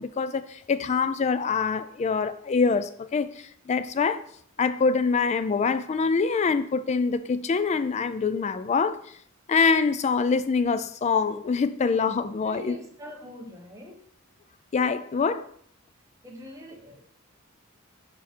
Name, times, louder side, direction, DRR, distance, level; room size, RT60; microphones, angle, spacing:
voice 1, 0.0-4.2 4.6-9.0 9.5-12.8 14.7-15.5, left 5 dB, 30° left, 0.3 m, -25 dB
voice 2, 12.4-14.1 16.2-17.0, left 1 dB, 15° right, 1.0 m, -43 dB
5.7 x 4.9 x 4.2 m
head